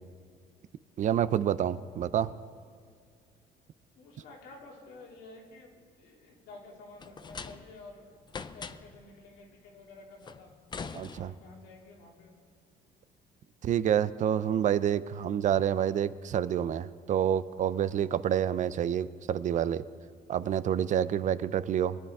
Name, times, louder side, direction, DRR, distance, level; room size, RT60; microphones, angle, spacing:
voice 1, 1.0-2.3 10.9-11.3 13.6-19.8 20.3-22.0, right 9 dB, 45° right, 16 dB, 0.4 m, -28 dB
voice 2, 4.0-8.1 8.5-10.5 11.2-12.3, left 2 dB, 90° left, -2 dB, 2.6 m, -51 dB
sound 1, 7.0-7.9 8.3-9.1 10.2-11.6, left 5 dB, 25° left, 0.5 m, -42 dB
22.5 x 10.5 x 3.5 m, 2.2 s
cardioid pair, 110°, 17 cm